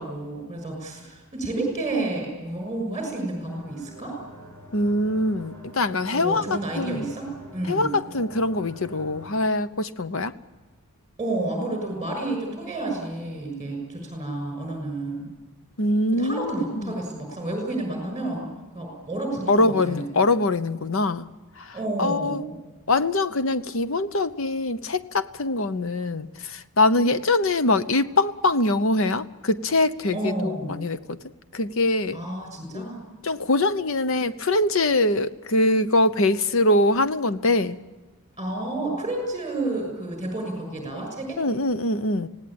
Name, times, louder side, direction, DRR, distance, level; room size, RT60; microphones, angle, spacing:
voice 1, 0.0-4.1 6.1-7.9 11.2-15.3 16.1-18.5 18.7-20.2 21.7-22.6 30.1-30.8 32.1-33.0 38.4-41.4, right 2 dB, 15° right, 3 dB, 6.6 m, -30 dB
sound 1, 3.5-9.3, right 1 dB, 15° left, 6.7 m, -46 dB
voice 2, 4.7-7.1 7.7-10.3 15.8-16.9 19.5-21.3 21.6-22.4 22.9-31.2 31.5-32.2 32.7-32.9 33.2-37.8 41.4-42.3, left 2 dB, 60° left, 13 dB, 0.8 m, -23 dB
25.5 x 17.5 x 8.8 m, 1.3 s
head